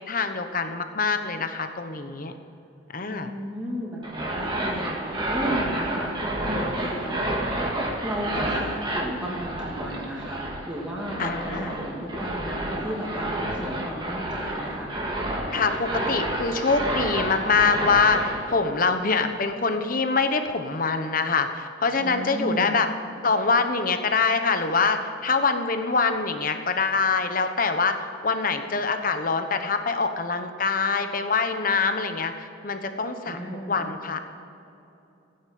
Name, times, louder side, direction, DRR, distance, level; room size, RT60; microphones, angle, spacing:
voice 1, 0.1-2.3 2.9-3.3 11.2-11.8 15.5-22.9 23.2-33.4 33.7-34.2, left 4 dB, 45° left, 7 dB, 1.1 m, -24 dB
voice 2, 3.1-7.2 8.0-14.9 22.0-22.8 33.3-33.9, equal, 5° right, -5 dB, 2.5 m, -34 dB
sound 1, 4.0-18.4, right 1 dB, 25° right, 2.0 m, -29 dB
16.0 x 9.8 x 7.8 m, 2.9 s
head